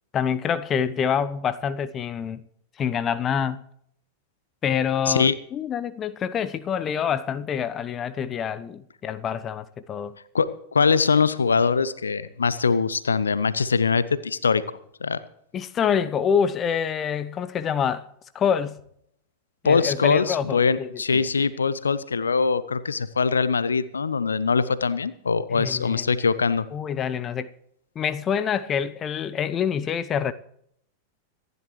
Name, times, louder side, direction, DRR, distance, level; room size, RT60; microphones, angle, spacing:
voice 1, 0.1-2.4 2.8-3.6 4.6-10.1 15.5-18.1 18.3-18.8 19.6-21.3 25.5-26.1 26.7-27.5 28.0-30.3, left 7 dB, 25° left, 0.7 m, -26 dB
voice 2, 5.1-5.4 10.3-14.6 15.0-15.2 19.6-26.7, left 5 dB, 75° left, 0.7 m, -22 dB
26.0 x 11.0 x 3.2 m
figure-of-eight pair, 90°, 0 cm